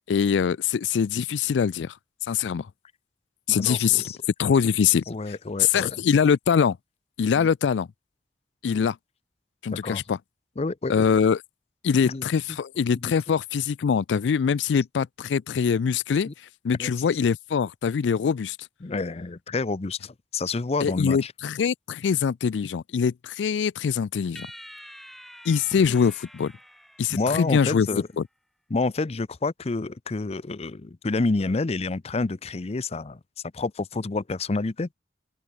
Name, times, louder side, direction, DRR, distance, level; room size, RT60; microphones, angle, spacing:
voice 1, 0.1-1.9 2.3-2.7 3.5-4.0 4.4-5.0 5.6-6.8 7.2-7.9 8.6-9.0 9.6-10.2 10.9-11.4 11.8-16.3 16.6-18.6 20.8-24.5 25.5-26.5 27.0-27.9 28.2-28.3, left 7 dB, 85° left, 0.4 m, -23 dB
voice 2, 3.6-4.2 5.1-6.0 7.4-7.5 9.7-10.0 10.6-11.0 12.0-12.2 13.0-13.1 16.3-16.4 16.8-17.1 18.8-21.3 27.1-28.1 28.7-33.2 33.5-34.9, left 3 dB, 35° left, 0.6 m, -28 dB
sound 1, 24.4-27.9, equal, ahead, 1.5 m, -47 dB
head